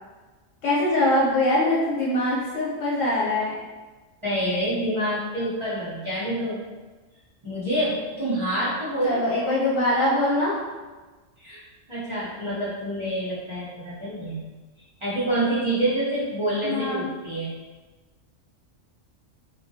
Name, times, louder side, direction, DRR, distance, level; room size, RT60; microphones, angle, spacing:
voice 1, 0.6-3.6 9.0-10.6 16.6-17.1, left 1 dB, 80° left, -8 dB, 1.1 m, -23 dB
voice 2, 4.2-6.7 7.4-9.5 11.4-11.6 11.9-14.5 15.0-17.5, right 1 dB, 30° right, -10 dB, 0.6 m, -27 dB
2.3 x 2.2 x 2.6 m, 1.3 s
omnidirectional pair, 1.3 m